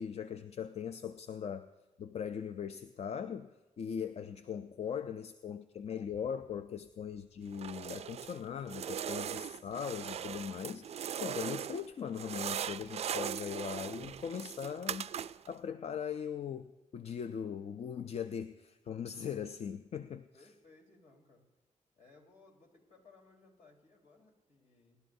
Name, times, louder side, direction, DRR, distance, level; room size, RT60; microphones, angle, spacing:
voice 1, 0.0-1.7 2.0-15.1 15.5-20.3, left 7 dB, 55° left, 10 dB, 0.5 m, -40 dB
sound 1, 7.5-8.4 8.7-11.9 12.1-15.5, right 9 dB, 55° right, 0.4 m, -39 dB
voice 2, 20.3-21.4 22.0-25.0, left 3 dB, 75° left, -1 dB, 3.7 m, -62 dB
24.0 x 11.5 x 2.7 m, 1.2 s
cardioid pair, 75°, 13 cm